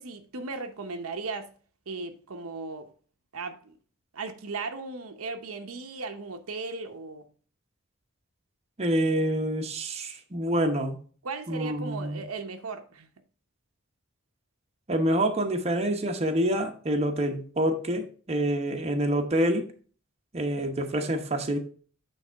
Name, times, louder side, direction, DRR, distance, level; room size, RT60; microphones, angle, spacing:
voice 1, 0.0-1.5 1.9-2.9 3.3-3.8 4.1-7.2 11.2-13.1, right 3 dB, 90° right, 0.8 m, -36 dB
voice 2, 8.8-11.0 11.5-12.2 14.9-19.7 20.3-21.6, right 1 dB, 30° right, 0.9 m, -27 dB
8.6 x 3.4 x 4.5 m
head